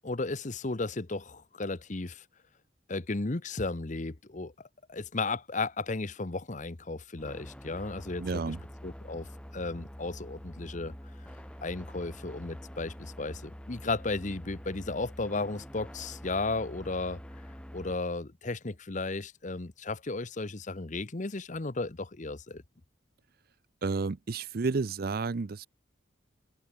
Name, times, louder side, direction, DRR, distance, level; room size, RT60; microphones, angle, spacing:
voice 1, 0.0-2.2 2.9-4.5 4.9-8.5 8.8-9.3 9.5-10.9 11.6-17.2 17.7-22.6, left 3 dB, 40° left, 0.9 m, -34 dB
sound 1, 7.2-18.0, equal, 5° left, 4.3 m, -46 dB
voice 2, 8.2-8.6 23.8-25.7, right 4 dB, 50° right, 0.5 m, -31 dB
head